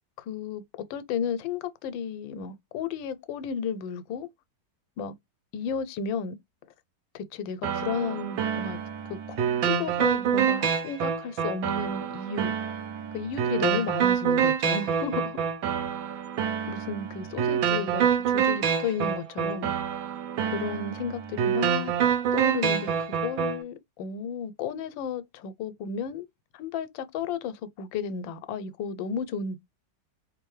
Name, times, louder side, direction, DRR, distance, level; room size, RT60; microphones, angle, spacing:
voice 1, 0.3-0.6 0.9-4.3 5.0-5.1 5.5-6.4 7.1-8.8 9.1-12.6 13.1-15.4 16.7-19.7 20.4-21.9 22.3-26.3 26.5-29.6, left 6 dB, 90° left, 1.3 m, -33 dB
sound 1, 7.6-23.6, right 8 dB, 85° right, 1.6 m, -27 dB
4.4 x 2.6 x 3.1 m
omnidirectional pair, 2.0 m